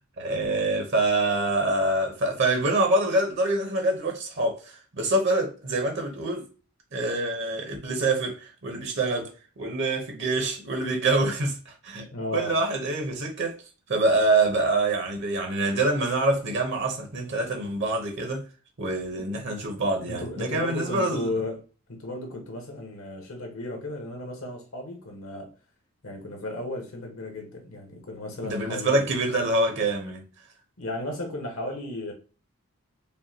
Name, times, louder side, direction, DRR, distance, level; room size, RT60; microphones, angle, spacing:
voice 1, 0.2-6.5 6.9-9.3 9.6-12.1 12.3-13.6 13.9-18.4 18.8-21.3 28.4-30.2, right 2 dB, 50° right, 0.9 m, -25 dB
voice 2, 12.1-12.6 19.2-19.5 20.1-21.6 21.9-25.5 26.0-29.1 30.8-32.1, left 1 dB, 65° left, 1.1 m, -34 dB
5.4 x 2.3 x 2.8 m
head